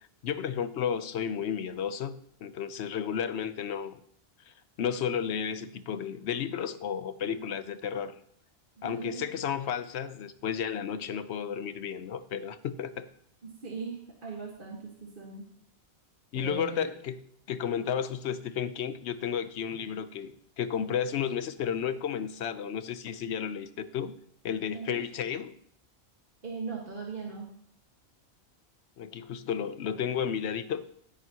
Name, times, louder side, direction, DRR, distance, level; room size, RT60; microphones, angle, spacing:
voice 1, 0.2-4.0 4.8-8.2 8.8-13.1 16.3-17.2 17.5-24.1 24.4-25.5 29.0-30.9, left 8 dB, 80° left, 13 dB, 0.9 m, -32 dB
voice 2, 7.2-7.6 8.8-9.4 13.4-15.5 16.3-16.9 24.7-25.0 26.4-27.5, right 4 dB, 50° right, -2 dB, 1.7 m, -39 dB
16.0 x 9.1 x 2.8 m, 0.69 s
omnidirectional pair, 1.1 m